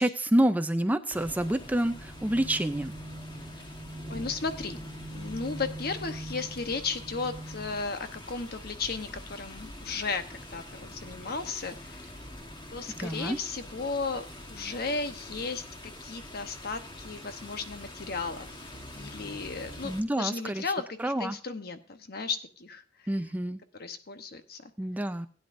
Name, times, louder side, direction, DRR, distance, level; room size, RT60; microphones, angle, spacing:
voice 1, 0.0-2.9 13.0-13.4 19.8-20.6 21.0-21.3 23.1-23.6 24.8-25.3, right 1 dB, 10° right, 10 dB, 0.5 m, -28 dB
sound 1, 1.1-20.0, left 1 dB, 25° left, 1.4 m, -45 dB
sound 2, 1.8-7.8, right 1 dB, 75° right, 1.4 m, -43 dB
voice 2, 4.1-4.8 5.1-12.2 12.7-23.2 23.8-24.7, left 4 dB, 60° left, 8 dB, 1.0 m, -35 dB
16.5 x 9.7 x 2.6 m, 0.38 s
head